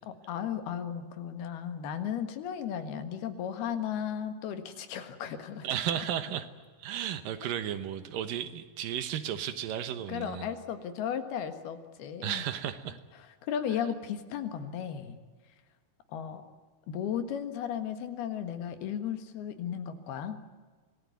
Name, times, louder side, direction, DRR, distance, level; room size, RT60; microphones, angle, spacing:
voice 1, 0.0-5.7 10.1-12.4 13.4-15.2 16.1-16.4 16.9-20.4, left 8 dB, 90° left, 8 dB, 3.6 m, -35 dB
voice 2, 5.6-6.5 6.8-10.5 12.2-13.0, right 10 dB, 70° right, 11 dB, 2.6 m, -34 dB
25.5 x 19.0 x 9.5 m, 1.4 s
omnidirectional pair, 4.4 m